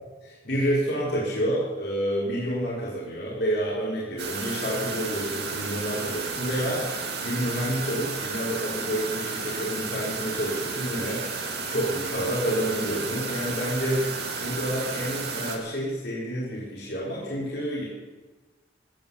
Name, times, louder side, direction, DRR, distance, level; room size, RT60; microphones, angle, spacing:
voice 1, 0.2-17.8, equal, 70° left, -7 dB, 4.5 m, -29 dB
sound 1, 4.2-15.6, right 4 dB, 60° right, 2.2 m, -32 dB
16.0 x 9.6 x 7.1 m, 1.2 s
head